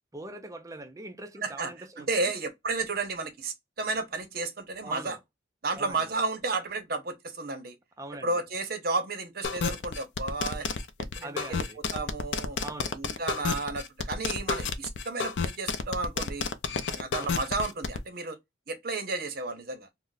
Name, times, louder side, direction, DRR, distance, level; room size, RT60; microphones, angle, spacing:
voice 1, 0.1-2.1 4.8-5.2 5.8-6.1 8.0-8.3 11.2-11.8 12.6-12.9 17.2-17.3, right 2 dB, 15° right, 0.4 m, -42 dB
voice 2, 2.0-5.2 5.6-7.8 8.2-10.7 11.0-11.6 11.9-12.6 12.9-16.5 16.9-18.4 18.7-19.9, right 3 dB, 50° right, 0.7 m, -32 dB
sound 1, 9.4-18.0, left 5 dB, 60° left, 0.4 m, -30 dB
2.4 x 2.1 x 3.9 m
head